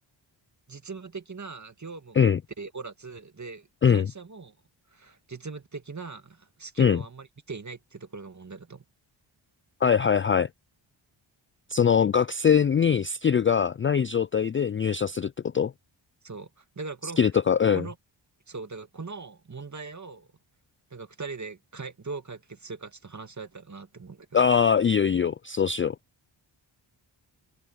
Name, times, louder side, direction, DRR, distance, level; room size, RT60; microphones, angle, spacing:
voice 1, 0.7-2.3 2.6-4.6 4.9-8.8 16.2-17.2 17.7-18.0 18.5-20.3 20.9-24.4, right 4 dB, 35° right, 2.3 m, -40 dB
voice 2, 9.8-10.5 11.7-15.7 17.2-17.8 24.3-25.9, left 7 dB, 30° left, 0.3 m, -22 dB
cardioid pair, 55°, 49 cm